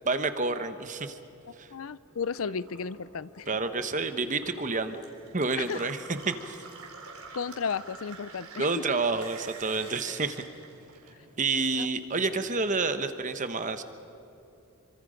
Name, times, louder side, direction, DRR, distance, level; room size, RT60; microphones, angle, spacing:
voice 1, 0.0-1.2 1.6-1.7 3.5-5.0 5.3-6.6 8.6-10.4 11.4-13.8, right 3 dB, 35° right, 9 dB, 1.1 m, -29 dB
voice 2, 1.7-3.5 5.6-5.9 7.3-9.0 11.8-11.9, left 6 dB, 65° left, 18 dB, 0.5 m, -34 dB
Gurgling / Water tap faucet / Sink (filling or washing), 2.1-11.6 11.9-12.8, right 3 dB, 75° right, 3.9 m, -47 dB
27.5 x 25.0 x 5.2 m, 2.8 s
head